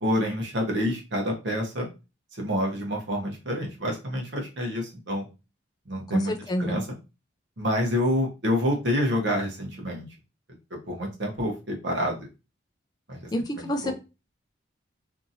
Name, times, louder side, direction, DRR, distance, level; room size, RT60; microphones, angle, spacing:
voice 1, 0.0-1.9 2.3-5.3 5.9-6.3 6.6-6.9 7.6-10.1 10.7-12.3 13.1-13.3 13.6-13.9, equal, 65° right, 0 dB, 0.9 m, -28 dB
voice 2, 6.1-6.8 13.3-13.9, equal, 20° left, 6 dB, 0.3 m, -28 dB
2.8 x 2.5 x 2.6 m, 0.29 s
head